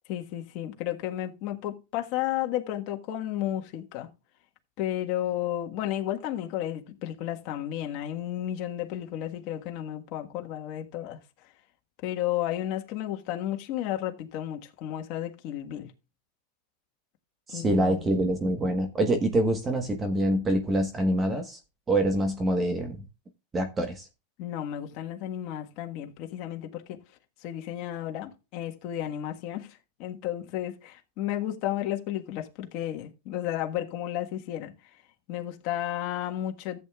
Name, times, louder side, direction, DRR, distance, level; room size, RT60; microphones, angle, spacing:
voice 1, 0.1-4.1 4.8-11.2 12.0-15.9 17.5-18.1 24.4-27.0 27.4-34.7 35.3-36.8, left 12 dB, 50° left, 1.4 m, -33 dB
voice 2, 17.5-21.6 21.9-23.0 23.5-24.1, right 1 dB, 20° right, 1.2 m, -25 dB
14.5 x 8.3 x 2.4 m
supercardioid pair, 135°, 0 cm